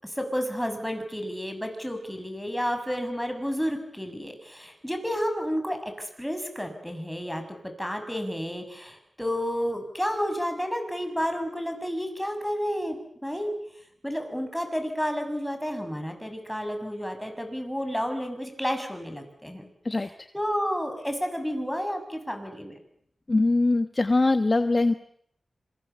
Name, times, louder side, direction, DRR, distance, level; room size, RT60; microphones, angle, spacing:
voice 1, 0.0-13.0 13.2-13.5 14.0-19.7 20.3-22.8, equal, 5° left, 6 dB, 6.8 m, -31 dB
voice 2, 23.3-24.9, left 2 dB, 35° left, 9 dB, 1.2 m, -22 dB
26.0 x 25.0 x 7.0 m, 0.69 s
wide cardioid pair, 70°, 0 cm